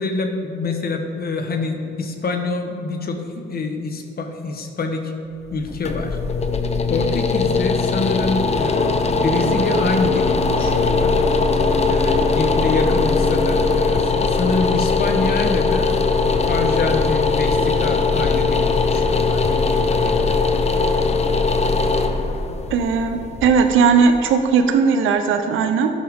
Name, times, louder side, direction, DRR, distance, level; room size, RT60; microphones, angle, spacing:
voice 1, 0.0-5.1 5.5-6.2 6.9-11.2 11.9-15.9 16.5-20.4, left 3 dB, 50° left, 5 dB, 1.4 m, -26 dB
sound 1, 5.5-24.4, left 4 dB, 35° left, 0.8 m, -20 dB
voice 2, 22.7-25.9, right 5 dB, 85° right, 6 dB, 1.0 m, -17 dB
13.0 x 9.9 x 3.8 m, 2.6 s
cardioid pair, 90°, 20 cm